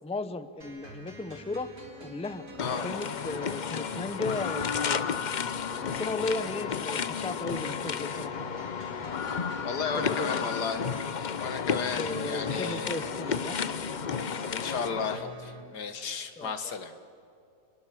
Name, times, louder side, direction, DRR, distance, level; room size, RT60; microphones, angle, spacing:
voice 1, 0.0-1.7 2.0-2.4 2.8-5.0 5.9-9.3 9.9-10.6 11.9-13.6 16.4-16.7, left 2 dB, 5° left, 12 dB, 0.7 m, -36 dB
sound 1, 0.6-15.6, equal, 65° right, 4.6 m, -46 dB
sound 2, 2.6-15.2, left 6 dB, 55° left, 0.5 m, -32 dB
voice 2, 9.6-10.9 11.4-13.0 14.5-16.9, left 5 dB, 85° left, 8 dB, 2.2 m, -34 dB
28.5 x 22.0 x 7.6 m, 2.6 s
omnidirectional pair, 1.7 m